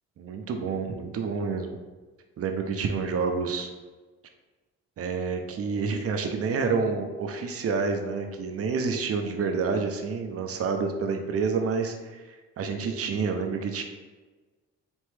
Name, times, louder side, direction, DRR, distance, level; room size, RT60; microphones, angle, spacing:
voice 1, 0.2-1.8 2.4-3.7 5.0-13.8, right 5 dB, 50° right, 5 dB, 0.6 m, -28 dB
4.4 x 2.9 x 3.3 m, 1.3 s
cardioid pair, 90°, 30 cm